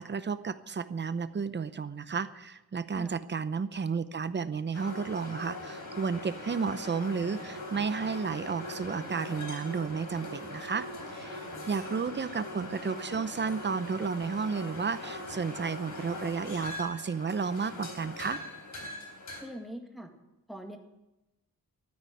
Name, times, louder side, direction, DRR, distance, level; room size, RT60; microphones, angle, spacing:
voice 1, 0.0-18.4, right 5 dB, 30° right, 13 dB, 0.7 m, -32 dB
sound 1, 4.7-19.4, left 2 dB, 60° left, 3.8 m, -41 dB
voice 2, 19.4-20.1 20.5-20.8, equal, ahead, 3 dB, 1.8 m, -42 dB
13.0 x 9.6 x 9.1 m, 0.96 s
wide cardioid pair, 140°, 35 cm